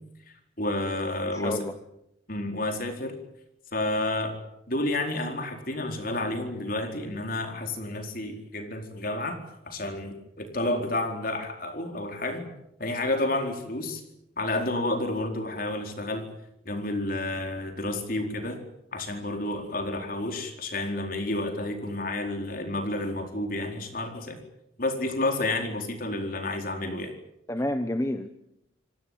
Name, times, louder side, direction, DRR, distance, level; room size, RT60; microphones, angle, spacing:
voice 1, 0.6-1.7 2.3-3.2 3.7-4.4 4.7-9.4 9.7-12.5 12.8-14.0 14.4-16.2 16.6-18.6 18.9-24.4 24.8-27.1, left 2 dB, 45° left, 5 dB, 4.4 m, -30 dB
voice 2, 1.3-1.7 27.5-28.3, left 1 dB, 15° left, 9 dB, 1.0 m, -29 dB
27.0 x 18.5 x 9.3 m, 0.81 s
head